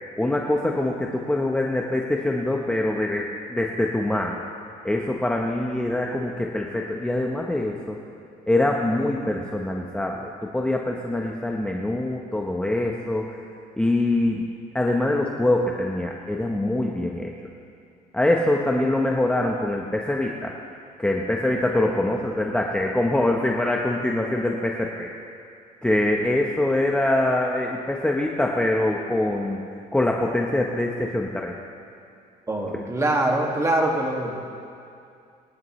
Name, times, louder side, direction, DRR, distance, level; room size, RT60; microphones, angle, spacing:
voice 1, 0.2-4.4 4.8-8.0 8.5-13.2 13.8-14.4 14.7-17.3 18.1-20.5 21.0-25.1 25.8-29.6 29.9-31.5, left 1 dB, 5° left, 0 dB, 0.9 m, -24 dB
voice 2, 32.5-34.3, right 1 dB, 15° right, 0 dB, 2.0 m, -23 dB
24.0 x 11.0 x 3.2 m, 2.4 s
cardioid pair, 110°, 17 cm